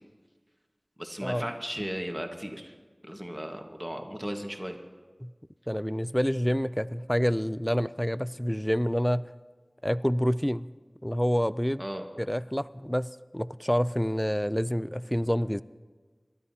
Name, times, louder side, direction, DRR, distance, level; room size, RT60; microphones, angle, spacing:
voice 1, 1.0-2.7 3.0-4.8 11.8-12.1, equal, 10° right, 3 dB, 1.5 m, -36 dB
voice 2, 5.7-9.3 9.8-10.7 11.0-11.8 12.2-15.6, equal, 10° left, 16 dB, 0.3 m, -27 dB
28.5 x 12.5 x 2.8 m, 1.4 s
wide cardioid pair, 40°, 0 cm